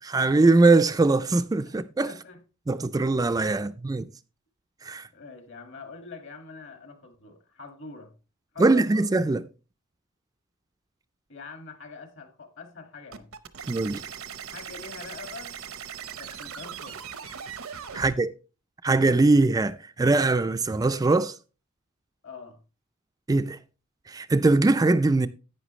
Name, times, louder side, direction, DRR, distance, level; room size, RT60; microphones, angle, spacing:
voice 1, 0.0-2.1 2.7-4.1 4.8-5.1 8.6-9.4 13.7-14.0 17.9-18.3 18.8-21.4 23.3-23.6 24.1-25.3, right 3 dB, 15° right, 0.4 m, -21 dB
voice 2, 2.1-2.4 3.5-3.7 5.1-8.1 8.5-9.1 11.3-13.3 14.5-15.6 16.2-17.0 17.9-18.1 22.2-22.6, left 4 dB, 60° left, 1.9 m, -44 dB
sound 1, 13.1-18.1, right 7 dB, 70° right, 0.8 m, -39 dB
11.0 x 8.8 x 3.1 m
head